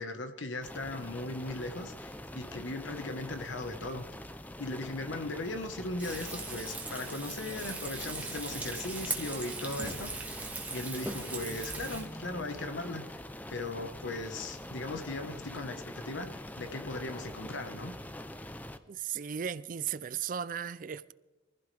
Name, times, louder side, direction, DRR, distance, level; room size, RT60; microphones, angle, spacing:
voice 1, 0.0-4.0 4.6-10.3 10.7-13.2 13.5-18.0, left 2 dB, 75° left, 1.3 m, -38 dB
sound 1, 0.6-18.8, left 1 dB, 10° left, 0.5 m, -44 dB
Frying (food), 6.0-12.0, right 3 dB, 10° right, 1.5 m, -39 dB
voice 2, 18.9-21.1, right 8 dB, 45° right, 0.4 m, -36 dB
23.5 x 15.0 x 3.4 m
head